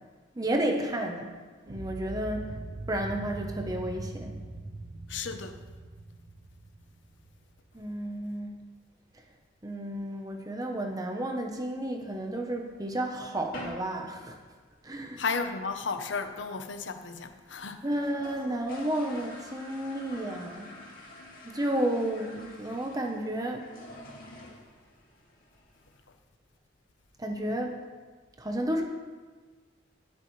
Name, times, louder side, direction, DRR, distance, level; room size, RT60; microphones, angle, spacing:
voice 1, 0.4-1.3 1.7-2.5 2.9-4.4 7.7-8.5 9.6-14.4 14.8-15.2 17.8-20.7 21.4-23.6 27.2-27.8 28.4-28.8, right 1 dB, 20° right, 0.9 m, -32 dB
Atomic Bomb, 1.7-7.7, right 2 dB, 55° right, 1.0 m, -41 dB
voice 2, 5.1-5.6 15.2-17.9, left 4 dB, 70° left, 0.8 m, -33 dB
sound 1, 11.3-12.4 12.8-12.9 13.1-13.2 13.5-14.0 14.2-14.3 14.6-14.7 15.0-15.4 15.8-15.9 16.1-16.2 16.4-16.5 17.0-17.1 17.4-17.5 17.7-26.0, left 1 dB, 50° left, 2.4 m, -47 dB
18.0 x 7.8 x 3.2 m
head